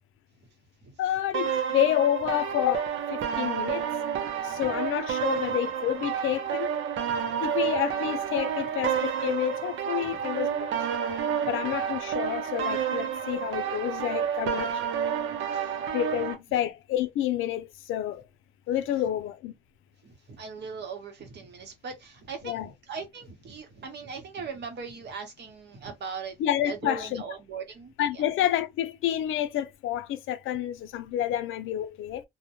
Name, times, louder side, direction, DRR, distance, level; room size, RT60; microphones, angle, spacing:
voice 1, 1.0-3.8 4.4-6.7 7.4-10.8 11.5-14.7 15.9-18.2 18.7-19.5 22.4-22.7 26.4-27.2 28.0-32.2, left 11 dB, 85° left, 0.5 m, -29 dB
sound 1, 1.3-16.3, right 8 dB, 80° right, 0.6 m, -30 dB
voice 2, 7.0-7.4 10.0-10.2 11.4-11.7 15.3-15.9 16.5-16.6 20.0-26.4 26.6-28.3, right 5 dB, 60° right, 0.9 m, -40 dB
2.1 x 2.1 x 2.9 m
cardioid pair, 90°, 20 cm